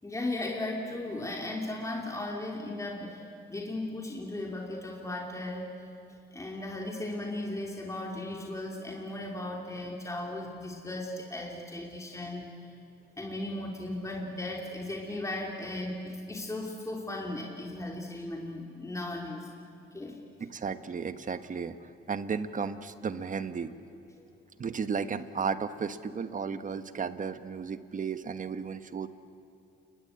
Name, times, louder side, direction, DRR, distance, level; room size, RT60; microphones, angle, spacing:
voice 1, 0.0-5.7 6.3-12.5 13.2-19.5 19.9-20.2 24.2-24.3, left 2 dB, 15° left, 0 dB, 3.2 m, -36 dB
voice 2, 20.4-23.7 24.6-29.1, right 6 dB, 40° right, 11 dB, 1.3 m, -34 dB
29.5 x 22.0 x 8.9 m, 2.5 s
cardioid pair, 90°, 20 cm